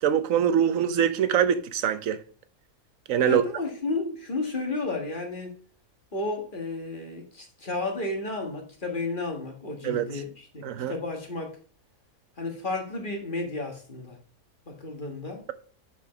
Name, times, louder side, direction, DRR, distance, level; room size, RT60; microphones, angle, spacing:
voice 1, 0.0-2.2 3.1-3.4 9.8-10.2 10.6-10.9, right 9 dB, 65° right, 1.0 m, -24 dB
voice 2, 3.2-5.5 6.1-11.6 12.4-14.2 14.7-15.5, left 3 dB, 30° left, 1.7 m, -32 dB
7.0 x 5.1 x 5.7 m
omnidirectional pair, 1.7 m